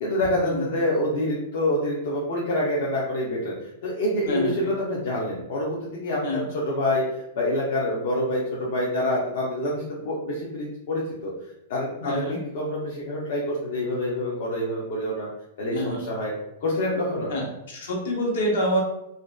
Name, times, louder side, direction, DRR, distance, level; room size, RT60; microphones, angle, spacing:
voice 1, 0.0-3.5 3.8-11.3 11.7-15.3 15.6-16.3 16.6-17.3, left 1 dB, 65° left, -5 dB, 0.5 m, -26 dB
voice 2, 12.0-12.4 15.7-16.0 17.3-18.8, equal, 80° left, -2 dB, 0.9 m, -27 dB
2.5 x 2.1 x 2.3 m, 0.84 s
hypercardioid pair, 145°, 0 cm